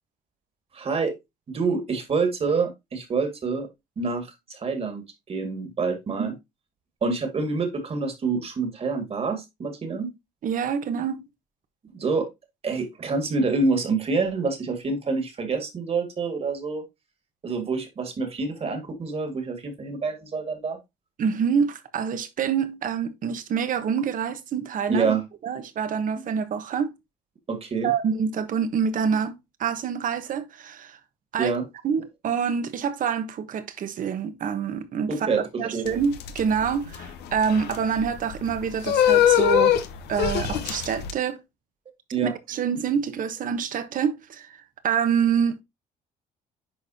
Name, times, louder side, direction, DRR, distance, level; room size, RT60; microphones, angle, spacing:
voice 1, 0.7-1.1 1.5-3.7 4.0-5.0 5.3-6.3 7.0-10.1 11.9-12.3 12.6-16.8 17.4-20.8 24.9-25.2 26.1-26.2 27.5-27.9 31.4-31.6 35.1-35.8 42.1-42.3, right 4 dB, 35° right, 2.1 m, -27 dB
voice 2, 10.4-11.2 21.2-25.1 25.4-27.0 27.8-31.0 31.3-31.5 31.8-35.3 35.6-39.8 40.1-41.4 42.2-45.6, right 7 dB, 50° right, 1.2 m, -26 dB
sound 1, 35.9-41.1, left 10 dB, 80° left, 1.0 m, -23 dB
10.5 x 4.1 x 2.8 m
cardioid pair, 110°, 17 cm